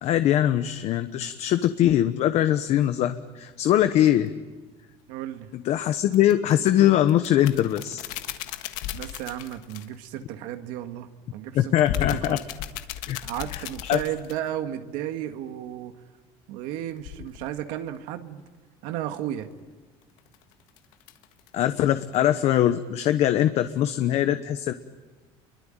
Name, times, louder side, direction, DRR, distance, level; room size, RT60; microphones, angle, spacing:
voice 1, 0.0-4.3 5.5-8.0 11.5-12.4 13.1-13.2 13.5-14.0 21.5-24.7, left 12 dB, 55° left, 10 dB, 1.1 m, -22 dB
sound 1, 4.1-4.2 6.0-6.7 7.1-10.1 11.8-14.5 17.0-17.5 20.0-21.6 22.1-22.2 22.5-22.7, left 11 dB, 85° left, 1.6 m, -36 dB
voice 2, 5.1-5.5 8.9-12.4 13.2-15.9 16.5-18.4 18.8-19.5, right 11 dB, 80° right, 7 dB, 1.8 m, -34 dB
28.0 x 23.0 x 9.1 m, 1.3 s
cardioid pair, 135°, 14 cm